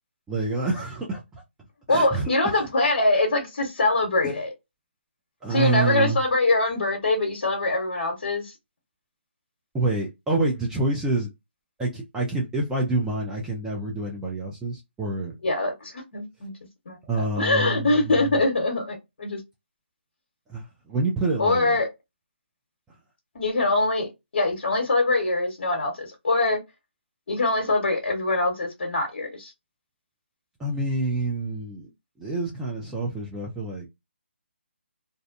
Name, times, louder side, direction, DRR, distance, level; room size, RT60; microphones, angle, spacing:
voice 1, 0.3-1.4 1.9-2.7 4.2-4.3 5.4-6.2 9.7-11.3 11.8-15.3 17.1-18.4 20.5-21.8 30.6-31.9 32.2-33.9, right 2 dB, 5° right, 0.4 m, -27 dB
voice 2, 1.9-4.5 5.5-8.5 15.4-16.5 16.9-17.0 17.4-19.4 21.4-21.9 23.3-26.6 27.3-29.5, left 2 dB, 55° left, 0.9 m, -23 dB
2.5 x 2.1 x 2.5 m
figure-of-eight pair, 155°, 6 cm